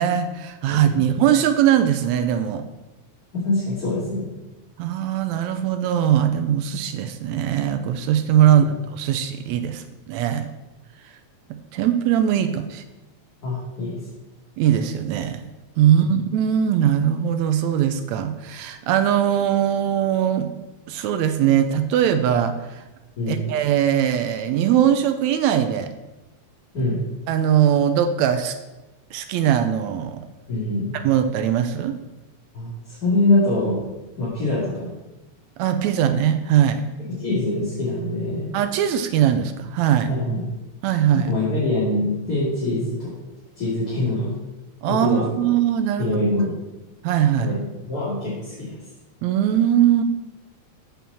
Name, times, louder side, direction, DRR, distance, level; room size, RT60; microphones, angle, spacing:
voice 1, 0.0-2.6 4.8-10.5 11.7-12.8 14.6-15.5 15.8-20.5 20.9-22.8 23.3-25.9 27.3-28.6 29.1-30.2 30.9-32.0 35.6-36.8 38.5-40.1 40.8-41.3 44.8-46.2 47.0-47.5 49.2-50.0, right 10 dB, 80° right, 9 dB, 1.9 m, -20 dB
voice 2, 0.7-1.0 3.4-4.3 13.4-14.0 15.8-15.9 23.2-23.4 26.7-27.0 30.5-30.9 32.5-33.8 34.2-34.9 37.2-38.5 40.1-40.4 41.3-43.1 43.6-44.3 44.9-45.2 46.0-46.5 47.4-47.6 47.9-48.8, left 2 dB, 35° left, -8 dB, 2.9 m, -24 dB
7.7 x 5.7 x 6.9 m, 1.1 s
omnidirectional pair, 3.3 m